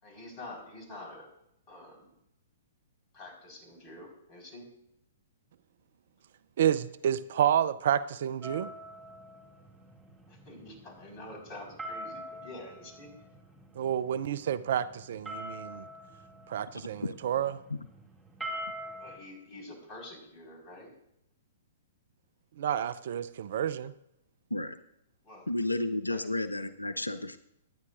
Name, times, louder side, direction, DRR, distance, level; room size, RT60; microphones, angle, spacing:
voice 1, 0.0-1.3 1.7-2.1 3.1-4.7 10.3-13.1 19.0-20.9 25.2-25.5 26.1-26.2, left 2 dB, 30° left, 1 dB, 4.6 m, -47 dB
voice 2, 6.6-8.7 13.8-15.9 16.5-17.6 22.6-23.9, right 9 dB, 55° right, 16 dB, 0.5 m, -29 dB
sound 1, 8.4-19.2, equal, 10° right, 2.4 m, -45 dB
voice 3, 25.5-27.4, left 1 dB, 90° left, 13 dB, 0.5 m, -32 dB
24.0 x 9.5 x 2.5 m, 0.80 s
figure-of-eight pair, 115°, 0 cm